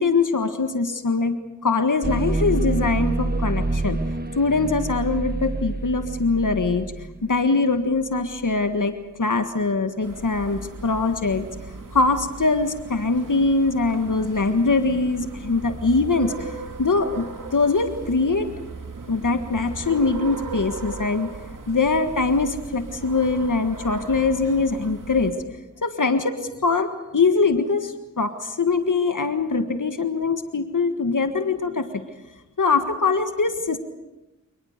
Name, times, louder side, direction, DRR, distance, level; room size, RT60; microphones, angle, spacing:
voice 1, 0.0-1.4 1.6-4.0 4.3-6.8 7.2-8.9 9.2-11.5 11.9-16.5 16.8-17.3 17.5-18.5 19.1-21.3 21.7-25.3 25.8-26.4 26.6-31.9 32.6-33.8, left 3 dB, 75° left, 8 dB, 1.7 m, -22 dB
sound 1, 2.0-7.3, right 2 dB, 30° right, 1.4 m, -27 dB
sound 2, 10.0-25.3, right 3 dB, 75° right, 2.2 m, -37 dB
27.0 x 20.0 x 6.7 m, 1.0 s
cardioid pair, 40°, 32 cm